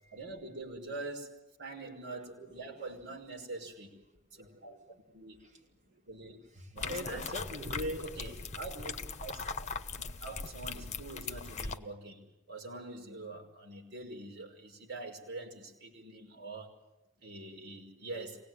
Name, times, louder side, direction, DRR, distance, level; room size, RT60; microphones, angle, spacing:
voice 1, 0.1-1.3 1.6-3.9 4.4-4.8 5.1-5.4 6.1-6.4 6.7-7.3 8.2-8.9 9.2-9.3 10.0-12.2 12.5-16.7 17.2-18.4, right 2 dB, 60° right, 1 dB, 5.6 m, -44 dB
voice 2, 1.8-2.8 3.1-3.2 3.6-3.7 4.1-5.0 5.4-6.0 6.4-8.6, equal, 40° right, -1 dB, 5.6 m, -44 dB
sound 1, 6.8-11.8, left 4 dB, 35° left, 1.2 m, -40 dB
25.0 x 19.0 x 9.3 m, 0.89 s
head